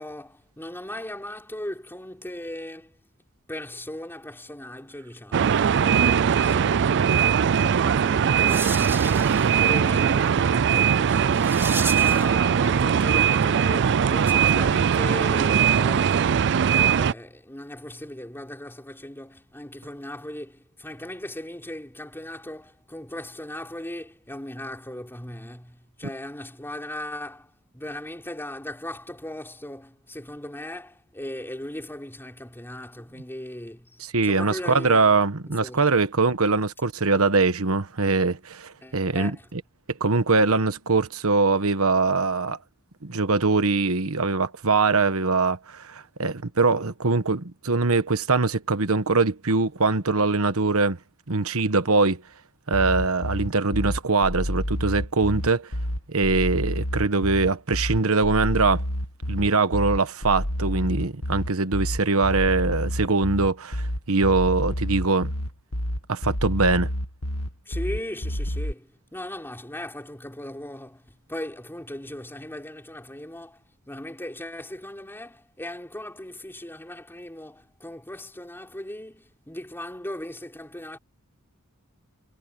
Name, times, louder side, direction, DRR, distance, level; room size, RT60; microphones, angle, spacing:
voice 1, 0.0-3.0 3.5-11.6 11.9-35.1 35.5-36.0 38.8-39.5 67.7-81.0, left 1 dB, 10° left, 4.2 m, -38 dB
sound 1, 5.3-17.1, right 7 dB, 55° right, 0.4 m, -20 dB
sound 2, 7.9-12.3, right 3 dB, 10° right, 4.1 m, -35 dB
voice 2, 34.1-39.6 40.0-42.6 43.0-51.0 51.3-52.2 52.7-55.7 56.1-58.8 59.3-65.3 66.1-66.9, right 3 dB, 70° right, 1.3 m, -22 dB
sound 3, 52.7-68.7, equal, 75° left, 2.3 m, -29 dB
head